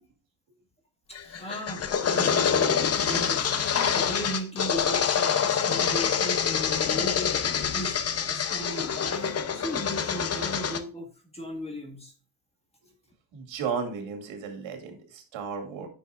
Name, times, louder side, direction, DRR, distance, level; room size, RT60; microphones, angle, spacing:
voice 1, 1.1-8.0 8.2-11.1 11.3-12.1, equal, 15° left, 2 dB, 1.7 m, -37 dB
sound 1, 1.2-10.8, left 7 dB, 35° left, 0.7 m, -26 dB
voice 2, 13.3-15.9, right 6 dB, 80° right, 5 dB, 2.3 m, -34 dB
9.9 x 6.1 x 2.4 m, 0.39 s
cardioid pair, 140°, 46 cm